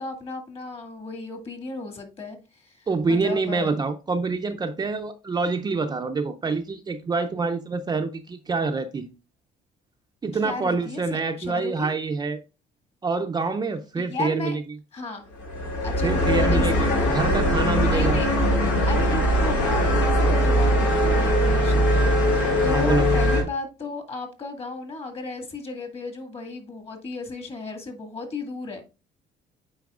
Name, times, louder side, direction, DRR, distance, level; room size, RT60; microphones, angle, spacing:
voice 1, 0.0-3.7 10.4-11.9 14.0-14.6 14.9-15.3 15.8-17.2 17.9-18.3 18.9-28.8, left 3 dB, 35° left, 2.0 m, -34 dB
voice 2, 2.9-9.1 10.2-12.4 13.0-14.6 16.0-18.2 22.5-23.2, right 4 dB, 25° right, 0.5 m, -26 dB
sound 1, 15.4-23.4, equal, 90° left, 2.8 m, -21 dB
9.3 x 4.5 x 2.4 m
cardioid pair, 110°, 17 cm